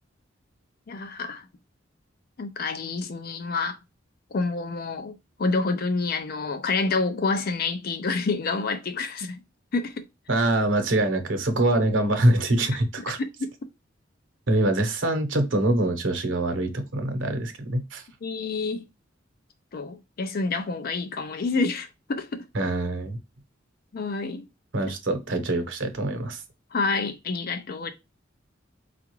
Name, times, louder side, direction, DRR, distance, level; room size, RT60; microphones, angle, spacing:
voice 1, 0.9-1.5 2.4-3.8 4.3-9.4 9.7-10.0 10.4-10.5 18.2-18.9 19.7-22.4 23.9-24.4 26.7-27.9, left 3 dB, 50° left, 0.4 m, -28 dB
voice 2, 10.3-13.2 14.5-18.0 22.5-23.2 24.7-26.4, right 1 dB, 80° right, 0.9 m, -24 dB
4.7 x 2.4 x 3.0 m
head